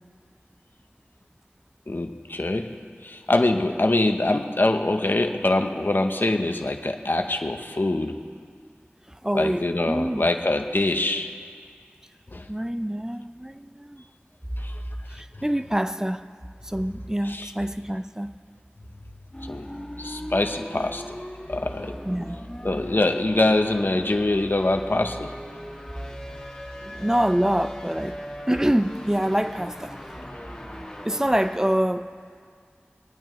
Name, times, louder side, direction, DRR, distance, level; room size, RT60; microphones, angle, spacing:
voice 1, 1.9-2.8 3.0-8.2 9.3-11.3 12.3-12.5 14.6-14.8 17.3-17.5 19.4-19.7 20.0-21.2 21.5-21.9 22.6-25.3, left 2 dB, 60° left, 5 dB, 0.7 m, -24 dB
voice 2, 9.1-10.3 12.5-14.0 15.1-16.2 16.6-18.3 22.0-22.4 26.8-28.2 28.5-30.0 31.0-32.1, equal, 15° right, 10 dB, 0.5 m, -26 dB
sound 1, 19.3-31.6, equal, 15° left, 2.0 m, -39 dB
24.0 x 9.0 x 3.1 m, 2.1 s
wide cardioid pair, 40°, 4 cm